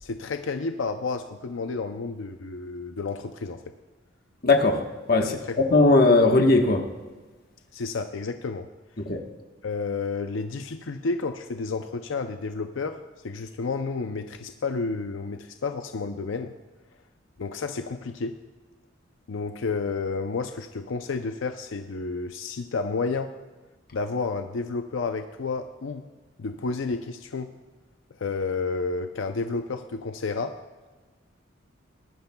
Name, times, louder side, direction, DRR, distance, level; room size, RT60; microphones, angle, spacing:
voice 1, 0.0-3.6 5.2-5.6 7.7-8.7 9.6-13.0 13.2-16.5 17.4-18.3 19.3-23.3 23.9-26.0 26.4-27.5 28.2-30.5, left 4 dB, 85° left, 7 dB, 0.6 m, -31 dB
voice 2, 4.4-4.8 5.1-5.3 5.7-6.8 9.0-9.2, left 2 dB, 50° left, 3 dB, 1.2 m, -18 dB
19.0 x 11.5 x 2.3 m, 1.3 s
head